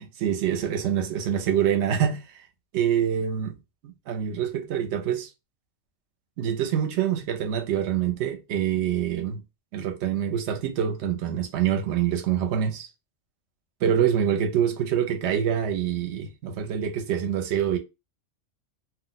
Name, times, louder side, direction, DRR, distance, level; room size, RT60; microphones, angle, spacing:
voice 1, 0.0-2.2 2.7-3.6 3.8-5.3 6.4-9.4 9.7-12.9 13.8-17.8, right 9 dB, 70° right, 0.8 m, -25 dB
2.3 x 2.1 x 3.8 m
omnidirectional pair, 1.3 m